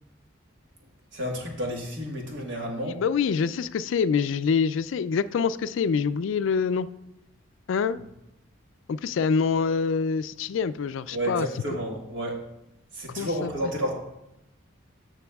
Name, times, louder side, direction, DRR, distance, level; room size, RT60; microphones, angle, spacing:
voice 1, 1.1-3.0 11.1-12.4 12.9-13.9, equal, 60° right, 0 dB, 1.5 m, -31 dB
voice 2, 2.9-6.9 7.7-8.0 8.9-11.5 13.2-13.5, left 5 dB, 70° left, 14 dB, 0.3 m, -25 dB
14.5 x 5.9 x 2.3 m, 0.87 s
head